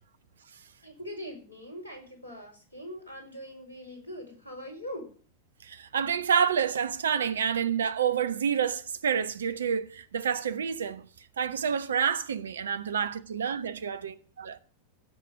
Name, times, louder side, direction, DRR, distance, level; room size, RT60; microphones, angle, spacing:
voice 1, 0.8-5.1, equal, 80° left, 5.0 m, -42 dB
voice 2, 5.7-11.0 11.4-14.6, right 7 dB, 65° right, 0.9 m, -28 dB
15.5 x 6.8 x 7.8 m
figure-of-eight pair, 90°, 0 cm